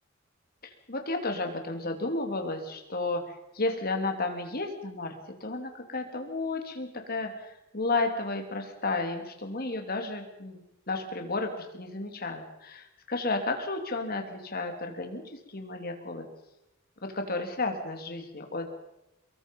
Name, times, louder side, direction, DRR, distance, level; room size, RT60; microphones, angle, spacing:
voice 1, 0.6-5.1 5.4-10.6 10.9-16.2 17.0-18.8, left 2 dB, 50° left, 4 dB, 3.3 m, -32 dB
24.0 x 22.5 x 5.6 m, 0.88 s
head